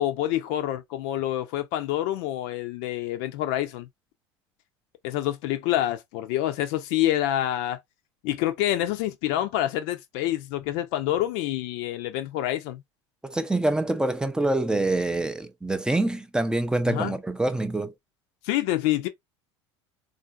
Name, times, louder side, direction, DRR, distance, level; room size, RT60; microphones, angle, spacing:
voice 1, 0.0-3.9 5.0-7.8 8.2-12.8 16.9-17.1 18.4-19.1, left 13 dB, 60° left, 0.5 m, -27 dB
voice 2, 13.2-17.9, right 2 dB, 5° right, 0.5 m, -25 dB
3.6 x 2.5 x 2.3 m
hypercardioid pair, 75°, 14 cm